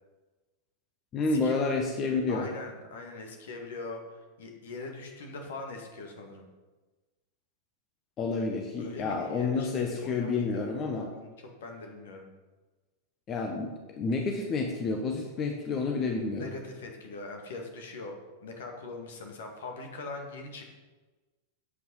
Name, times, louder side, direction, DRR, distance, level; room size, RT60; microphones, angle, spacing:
voice 1, 1.1-2.5 8.2-11.1 13.3-16.5, left 4 dB, 30° left, 2 dB, 1.2 m, -29 dB
voice 2, 2.3-6.5 8.8-10.6 11.1-11.3 11.6-12.3 16.3-18.1 18.4-20.8, left 3 dB, 60° left, 3 dB, 2.0 m, -42 dB
8.5 x 8.4 x 5.6 m, 1.2 s
figure-of-eight pair, 90°, 0 cm